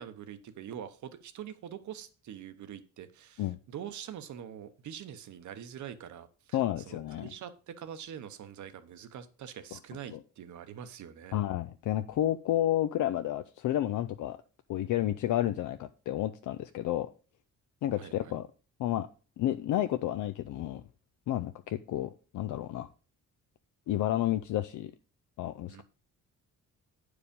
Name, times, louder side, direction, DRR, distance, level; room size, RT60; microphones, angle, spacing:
voice 1, 0.0-6.6 6.9-11.4 18.0-18.3 25.7-25.8, right 9 dB, 70° right, 11 dB, 1.0 m, -44 dB
voice 2, 6.5-7.3 9.7-9.8 10.1-10.2 11.3-14.4 14.7-17.1 17.8-18.5 18.8-19.1 19.4-20.8 21.3-22.9 23.9-24.9 25.4-25.8, left 13 dB, 75° left, 11 dB, 0.5 m, -31 dB
9.8 x 4.9 x 5.2 m, 0.37 s
cardioid pair, 165°, 31 cm